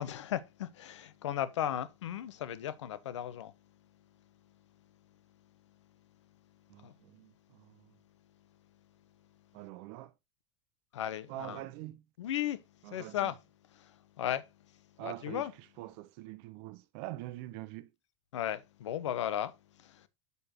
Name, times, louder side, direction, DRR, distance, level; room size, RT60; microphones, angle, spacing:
voice 1, 0.0-3.5 6.8-6.9 10.9-11.6 12.2-13.4 13.7-14.5 15.0-15.5 18.3-20.1, left 11 dB, 80° left, 0.8 m, -36 dB
voice 2, 6.7-8.0 9.5-10.1 11.3-12.1 12.8-13.3 15.0-17.9, right 16 dB, 60° right, 0.8 m, -45 dB
6.8 x 6.6 x 2.9 m
hypercardioid pair, 95°, 15 cm